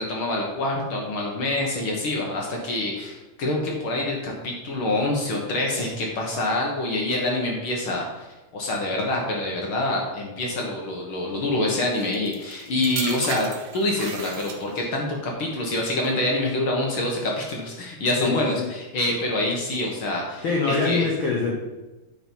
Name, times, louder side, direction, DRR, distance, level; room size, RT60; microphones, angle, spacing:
voice 1, 0.0-8.2 8.5-21.0, left 2 dB, 60° left, -1 dB, 1.5 m, -26 dB
sound 1, 11.9-15.0 15.8-16.1, right 7 dB, 70° right, 1.7 m, -36 dB
voice 2, 18.2-18.7 20.4-21.5, left 4 dB, 75° left, -1 dB, 1.1 m, -24 dB
8.7 x 4.8 x 5.5 m, 1.1 s
omnidirectional pair, 3.7 m